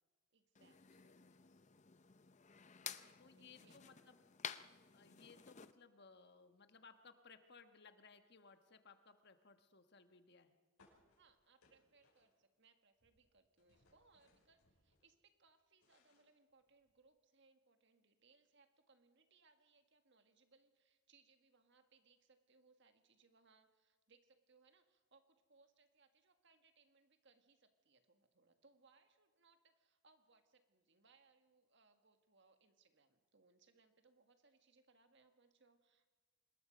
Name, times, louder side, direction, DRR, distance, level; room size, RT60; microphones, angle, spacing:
voice 1, 0.3-1.4 2.9-4.2 11.2-36.1, right 4 dB, 55° right, 7 dB, 1.7 m, -72 dB
sound 1, 0.5-5.7, left 8 dB, 30° left, 0.6 m, -52 dB
voice 2, 2.8-4.2 4.9-10.6, left 5 dB, 50° left, 8 dB, 1.3 m, -63 dB
sound 2, 10.8-12.7 12.9-15.1 15.5-17.0, left 2 dB, 85° left, 5.7 m, -74 dB
26.0 x 21.0 x 5.3 m, 1.3 s
head